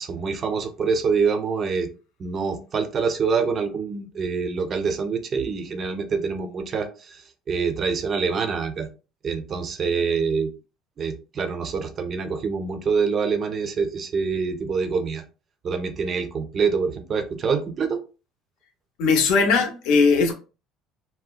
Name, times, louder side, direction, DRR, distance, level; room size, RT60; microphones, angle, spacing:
voice 1, 0.0-1.9 2.2-8.9 9.2-10.5 11.0-15.3 15.6-18.0, right 5 dB, 30° right, 0.4 m, -25 dB
voice 2, 19.0-20.3, left 4 dB, 65° left, 0.6 m, -19 dB
2.7 x 2.0 x 2.3 m
cardioid pair, 160°, 0 cm